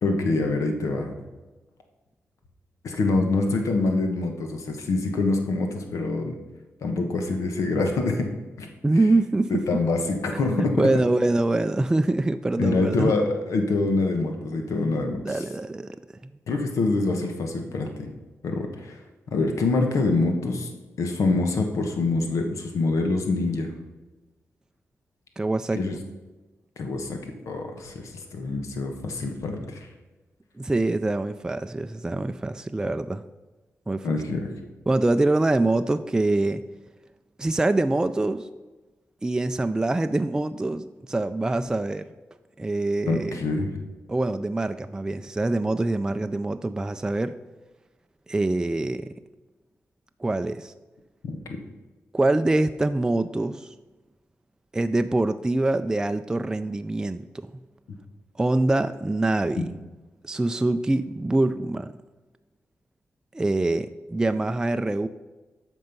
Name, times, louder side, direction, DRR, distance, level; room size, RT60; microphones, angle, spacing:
voice 1, 0.0-1.1 2.8-6.4 6.8-8.3 8.6-8.7 9.5-10.9 12.6-15.4 16.5-18.1 18.4-19.0 19.3-20.7 21.0-23.7 25.7-25.9 26.8-29.9 34.0-34.5 43.1-43.7 51.2-51.4, left 3 dB, 90° left, 4 dB, 1.2 m, -25 dB
voice 2, 8.8-9.6 10.5-13.1 15.2-15.9 16.2-16.3 25.4-25.8 30.6-33.2 33.9-34.1 34.9-36.6 37.4-38.5 39.2-42.1 42.6-43.4 44.1-47.4 48.3-49.1 50.2-50.7 52.1-53.7 54.7-57.5 58.4-59.7 60.2-61.9 63.3-65.1, right 2 dB, 15° right, 9 dB, 0.3 m, -24 dB
13.5 x 5.3 x 5.4 m, 1.2 s
wide cardioid pair, 115°, 5 cm